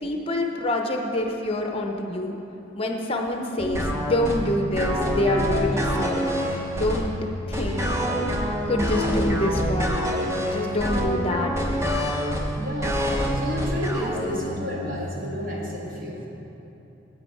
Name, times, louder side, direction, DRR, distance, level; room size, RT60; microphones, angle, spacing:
voice 1, 0.0-2.4 2.7-7.1 7.5-7.9 8.6-10.0 10.4-11.7, left 1 dB, 30° left, 3 dB, 0.8 m, -26 dB
sound 1, 3.6-15.0, equal, 15° right, 0.8 m, -26 dB
voice 2, 12.6-13.1 13.3-16.3, equal, 45° right, -4 dB, 1.9 m, -31 dB
9.7 x 8.8 x 4.7 m, 2.9 s
head